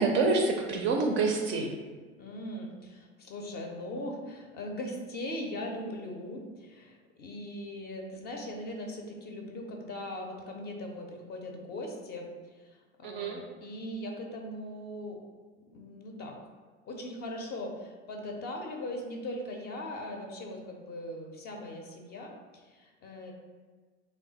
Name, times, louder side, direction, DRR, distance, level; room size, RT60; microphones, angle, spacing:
voice 1, 0.0-1.7 13.0-13.4, right 3 dB, 35° right, 2 dB, 0.4 m, -27 dB
voice 2, 2.2-15.2 15.7-16.4 16.9-23.3, left 1 dB, 30° left, 2 dB, 0.5 m, -40 dB
3.1 x 2.1 x 3.9 m, 1.4 s
figure-of-eight pair, 75°, 34 cm